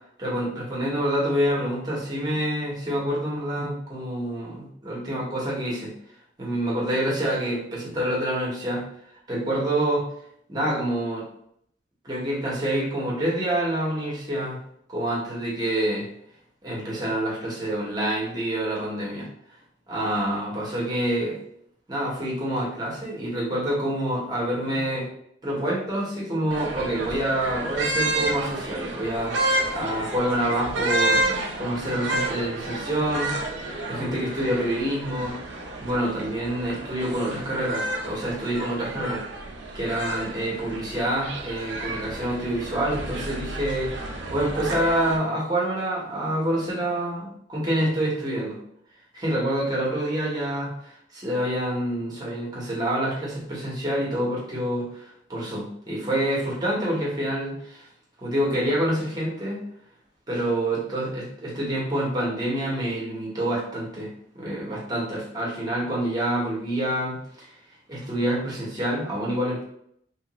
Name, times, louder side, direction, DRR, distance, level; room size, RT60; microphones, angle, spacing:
voice 1, 0.2-5.9 6.4-8.9 9.3-10.1 10.5-11.3 12.0-14.6 14.9-16.1 16.6-19.3 19.9-21.4 21.9-25.1 25.4-33.3 33.9-39.2 39.7-48.6 49.1-57.9 58.2-59.6 60.3-67.5 67.9-69.6, right 1 dB, 20° right, -5 dB, 1.0 m, -27 dB
sound 1, 26.5-45.2, right 1 dB, 85° right, 0.6 m, -30 dB
3.1 x 2.5 x 3.0 m, 0.70 s
head